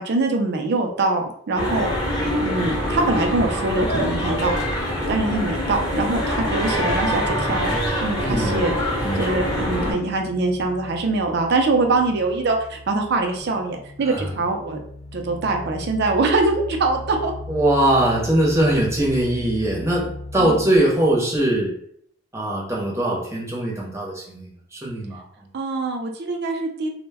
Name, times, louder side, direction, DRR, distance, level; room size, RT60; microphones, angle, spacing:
voice 1, 0.0-1.9 2.4-4.5 5.1-8.7 9.2-14.8 15.1-17.3 20.4-20.7 25.5-26.9, right 3 dB, 55° right, 3 dB, 0.4 m, -23 dB
sound 1, 1.5-9.9, equal, 20° left, 0.8 m, -24 dB
voice 2, 8.2-8.6 9.0-9.4 14.1-14.4 17.5-21.7 22.3-25.2, right 1 dB, 15° right, -3 dB, 0.7 m, -21 dB
sound 2, 8.3-20.7, left 2 dB, 80° left, 0.5 m, -38 dB
2.1 x 2.1 x 3.3 m, 0.64 s
head